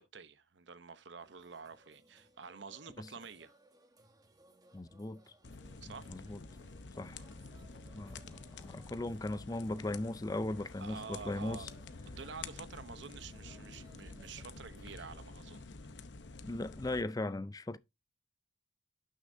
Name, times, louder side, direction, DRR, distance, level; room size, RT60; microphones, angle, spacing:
voice 1, 0.0-3.6 5.8-6.2 7.1-7.3 10.8-11.7 12.1-15.7, right 5 dB, 70° right, 0.9 m, -49 dB
sound 1, 1.2-15.2, right 1 dB, 20° right, 1.3 m, -64 dB
voice 2, 4.7-5.2 5.8-6.4 7.0-7.2 7.9-11.7 16.4-17.8, left 2 dB, 20° left, 0.4 m, -38 dB
sound 2, 5.4-17.0, left 3 dB, 70° left, 0.8 m, -49 dB
12.0 x 6.4 x 2.7 m
head